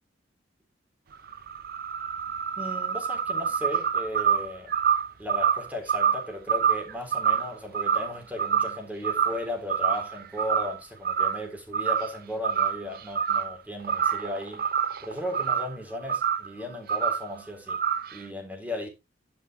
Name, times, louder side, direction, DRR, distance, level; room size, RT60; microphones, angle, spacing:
sound 1, 1.1-8.8 9.0-9.4 9.7-10.8 11.0-11.4 11.7-12.2 12.4-13.6 13.8-15.8 16.1-16.5 16.9-17.3 17.7-18.2, right 7 dB, 55° right, 0.7 m, -26 dB
voice 1, 2.6-4.7 5.2-14.7 15.0-17.8 18.1-18.9, left 1 dB, 10° right, 3.4 m, -36 dB
10.5 x 6.0 x 3.6 m
head